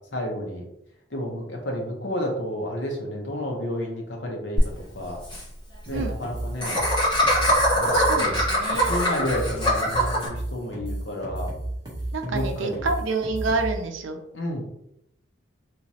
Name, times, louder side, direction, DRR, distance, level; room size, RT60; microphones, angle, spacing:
voice 1, 0.1-0.6 1.1-4.6 4.9-5.2 5.9-6.8 7.7-8.4 8.9-11.5 12.2-12.9 14.3-14.6, left 1 dB, 60° left, 0 dB, 0.9 m, -31 dB
Laughter, 4.6-4.7 4.9-5.0 5.2-5.4 6.6-10.3, equal, 25° left, 1.5 m, -22 dB
sound 1, 5.9-13.8, right 1 dB, 20° right, 1.0 m, -32 dB
voice 2, 7.9-8.9 12.1-14.2, right 3 dB, 75° right, 4 dB, 0.5 m, -28 dB
3.1 x 3.0 x 2.8 m, 0.79 s
head